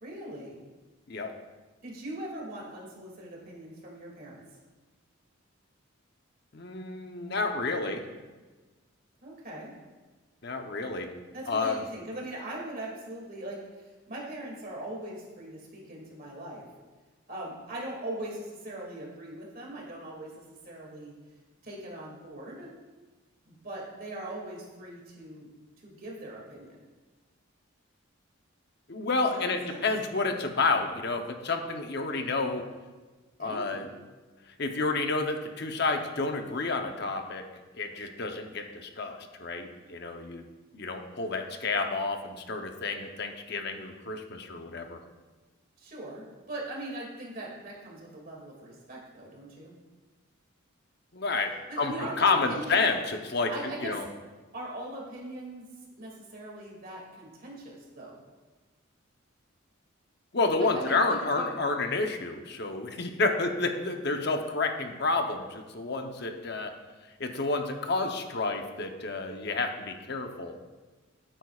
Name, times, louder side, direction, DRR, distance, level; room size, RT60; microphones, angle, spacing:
voice 1, 0.0-0.6 1.8-4.4 9.2-9.7 11.3-16.7 17.3-21.1 21.6-22.7 23.5-25.5 25.8-26.8 29.2-29.8 33.4-33.9 45.8-49.7 51.7-52.8 53.5-53.9 54.5-55.7 56.0-58.2 60.6-61.5, right 1 dB, 45° right, -3 dB, 2.3 m, -40 dB
voice 2, 6.5-8.1 10.4-11.1 11.5-11.8 28.9-32.6 33.4-33.9 34.6-37.4 37.7-40.5 40.7-45.0 51.1-54.0 60.3-66.7 67.2-70.5, left 3 dB, 55° left, 5 dB, 0.8 m, -30 dB
12.0 x 9.0 x 2.4 m, 1.3 s
head